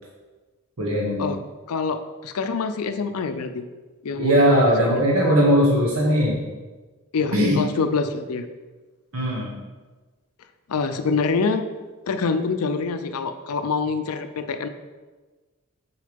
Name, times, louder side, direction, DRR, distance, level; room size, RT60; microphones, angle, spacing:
voice 1, 0.8-1.2 4.2-6.4 7.3-7.6 9.1-9.5, equal, 70° right, -3 dB, 1.2 m, -19 dB
voice 2, 1.7-3.7 4.0-5.0 7.1-8.5 10.7-11.6 12.1-14.7, left 4 dB, 80° left, 8 dB, 0.5 m, -26 dB
6.5 x 4.7 x 5.2 m, 1.3 s
head